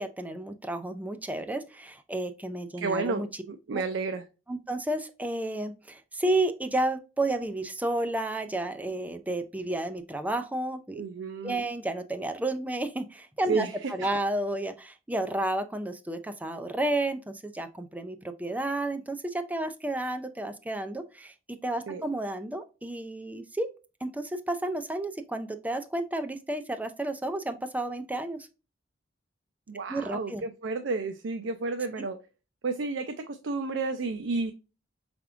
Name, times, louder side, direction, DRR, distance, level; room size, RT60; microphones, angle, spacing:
voice 1, 0.0-3.3 3.7-3.8 4.5-11.0 11.4-21.3 21.6-23.7 24.0-28.5 29.9-30.4, right 1 dB, 10° right, 0.4 m, -31 dB
voice 2, 2.8-4.2 10.9-11.6 13.5-14.2 21.9-22.0 29.7-32.2 32.6-34.5, right 3 dB, 65° right, 0.4 m, -31 dB
4.6 x 3.5 x 2.4 m
head